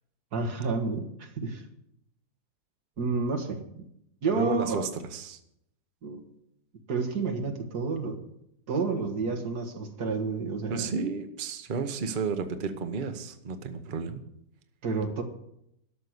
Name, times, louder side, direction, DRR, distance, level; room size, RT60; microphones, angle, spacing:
voice 1, 0.3-1.6 3.0-3.8 4.2-4.9 6.0-6.2 6.9-8.2 8.7-10.9 14.8-15.2, right 4 dB, 80° right, 5 dB, 2.1 m, -30 dB
voice 2, 4.3-5.4 10.7-14.2, right 5 dB, 35° right, 8 dB, 1.0 m, -32 dB
12.5 x 6.4 x 9.6 m, 0.77 s
omnidirectional pair, 1.7 m